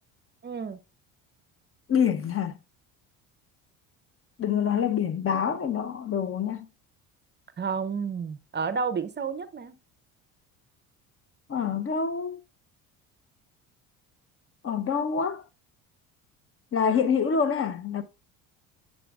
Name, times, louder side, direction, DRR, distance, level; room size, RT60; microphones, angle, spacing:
voice 1, 0.4-0.8 7.6-9.7, right 5 dB, 30° right, 0.6 m, -31 dB
voice 2, 1.9-2.6 4.4-6.7 11.5-12.4 14.6-15.4 16.7-18.0, left 7 dB, 35° left, 0.8 m, -26 dB
10.0 x 5.4 x 2.3 m
hypercardioid pair, 75°, 38 cm